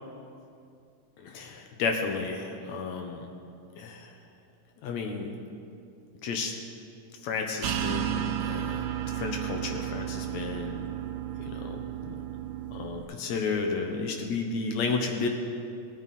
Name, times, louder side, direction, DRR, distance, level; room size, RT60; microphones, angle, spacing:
voice 1, 1.2-3.3 3.8-4.1 4.8-5.3 6.2-6.5 7.2-10.8 11.5-11.8 12.1-12.2 12.7-15.3, left 4 dB, 70° left, 3 dB, 2.1 m, -32 dB
sound 1, 7.6-13.0, right 11 dB, 90° right, 2.3 m, -33 dB
20.0 x 9.0 x 4.2 m, 2.5 s
omnidirectional pair, 3.7 m